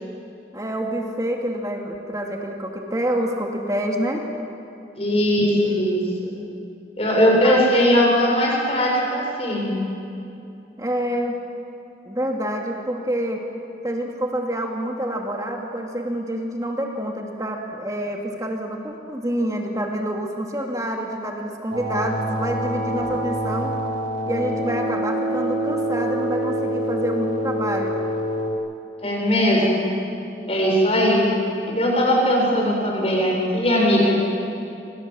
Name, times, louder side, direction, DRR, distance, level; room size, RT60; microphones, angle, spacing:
voice 1, 0.5-4.2 7.4-7.7 10.8-11.4 12.1-13.4 13.8-23.8 24.3-27.9, right 1 dB, 20° right, 1 dB, 2.5 m, -27 dB
voice 2, 5.0-6.3 7.0-9.8 29.0-29.9 30.5-31.2 31.6-34.1, equal, 35° left, -2 dB, 7.5 m, -19 dB
sound 1, 21.7-28.5, equal, 90° right, 4.6 m, -26 dB
27.5 x 26.5 x 7.8 m, 2.7 s
head